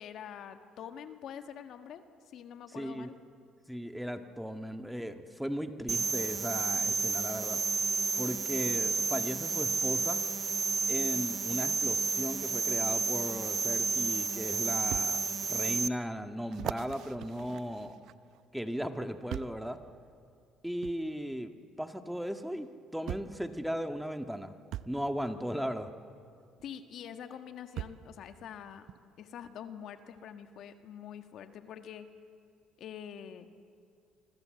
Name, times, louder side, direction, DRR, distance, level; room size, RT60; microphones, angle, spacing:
voice 1, 0.0-3.2 26.6-28.9 29.2-32.1 32.8-33.5, left 8 dB, 65° left, 8 dB, 1.7 m, -45 dB
voice 2, 2.7-3.1 3.7-7.6 8.1-10.2 10.9-18.0 18.5-19.8 20.6-21.5 21.8-24.5 24.9-25.9, equal, 5° right, 7 dB, 1.7 m, -37 dB
sound 1, 5.9-15.9, right 4 dB, 40° right, 0.8 m, -31 dB
sound 2, 14.9-15.1 15.7-15.8 16.5-18.4 19.3-19.7 20.8-21.0 22.2-22.3 23.1-23.4 24.7-25.0 26.6-26.7 27.8-28.1 28.9-29.0, right 12 dB, 70° right, 0.7 m, -40 dB
27.5 x 25.0 x 7.8 m, 2.3 s
supercardioid pair, 80°, 0 cm